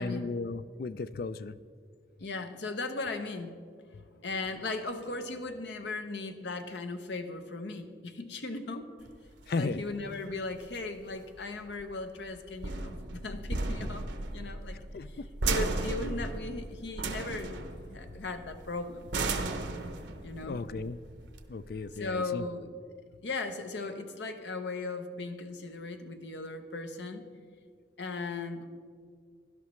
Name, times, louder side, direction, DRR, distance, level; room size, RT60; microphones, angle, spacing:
voice 1, 0.0-1.6 9.5-9.8 14.9-15.3 20.4-21.0 21.5-22.4, left 3 dB, 55° left, 15 dB, 0.4 m, -35 dB
voice 2, 2.2-3.5 4.2-9.1 9.6-15.2 15.4-19.1 20.2-20.6 21.9-22.7 23.2-27.3 28.0-28.6, left 3 dB, 80° left, 7 dB, 0.8 m, -37 dB
sound 1, 9.0-22.0, right 2 dB, 85° right, 0.9 m, -36 dB
17.0 x 11.5 x 3.2 m, 2.1 s
head